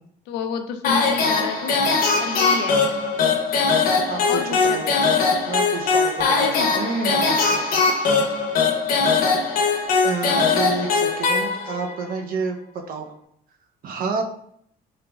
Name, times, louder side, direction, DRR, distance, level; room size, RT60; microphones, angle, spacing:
voice 1, 0.3-1.7 2.2-3.0 4.3-4.8 6.3-6.7 9.5-9.6, left 7 dB, 90° left, 6 dB, 0.4 m, -29 dB
sound 1, 0.8-12.0, left 4 dB, 60° left, 0.7 m, -21 dB
voice 2, 4.1-4.8 5.5-8.0 10.0-13.1 13.8-14.2, right 4 dB, 60° right, 4 dB, 0.5 m, -29 dB
3.8 x 3.2 x 2.2 m, 0.70 s
cardioid pair, 110°, 17 cm